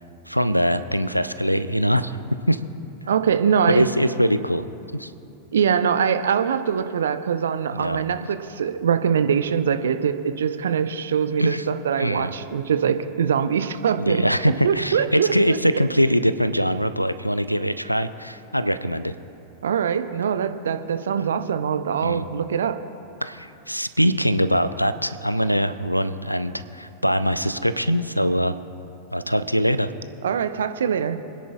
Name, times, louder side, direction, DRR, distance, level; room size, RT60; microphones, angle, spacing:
voice 1, 0.3-2.1 2.5-2.6 3.7-4.7 4.9-5.1 7.7-8.0 11.4-11.6 12.0-12.3 14.0-19.1 22.0-22.3 23.2-28.6 29.1-29.9, equal, 90° left, 13 dB, 0.4 m, -22 dB
voice 2, 3.1-3.9 5.5-15.8 19.6-22.8 30.2-31.2, right 7 dB, 65° right, 10 dB, 0.6 m, -23 dB
28.5 x 10.0 x 2.4 m, 2.8 s
figure-of-eight pair, 90°, 0 cm